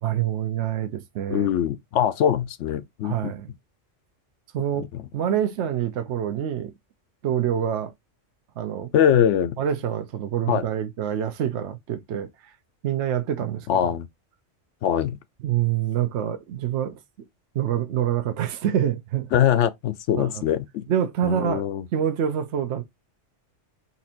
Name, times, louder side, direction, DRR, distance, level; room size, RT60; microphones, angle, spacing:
voice 1, 0.0-1.5 3.0-3.5 4.5-4.9 5.1-6.7 7.2-7.9 8.6-8.9 9.6-12.5 12.8-13.7 15.4-17.0 17.5-19.3 20.2-20.4 20.9-21.6 21.9-22.8, right 10 dB, 70° right, 0.9 m, -26 dB
voice 2, 1.3-3.3 4.9-5.0 8.9-9.6 10.5-10.7 13.7-14.1 14.8-15.2 19.3-20.8 21.2-21.9, left 9 dB, 75° left, 0.9 m, -22 dB
4.2 x 2.5 x 4.1 m
omnidirectional pair, 1.3 m